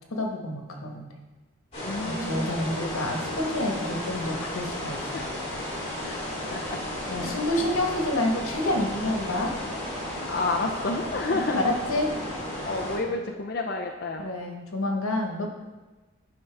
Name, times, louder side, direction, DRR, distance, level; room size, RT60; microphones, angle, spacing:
voice 1, 0.1-1.1 2.0-5.2 7.1-9.5 11.3-12.1 13.1-13.2 14.2-15.5, left 1 dB, 85° left, 2 dB, 1.3 m, -28 dB
sound 1, 1.7-13.0, left 1 dB, 30° left, 2.7 m, -34 dB
voice 2, 1.8-3.5 5.1-5.2 6.0-6.8 7.2-7.7 9.4-9.6 10.3-11.6 12.6-14.3, left 2 dB, 45° left, 2 dB, 0.5 m, -31 dB
10.5 x 5.4 x 3.4 m, 1.2 s
head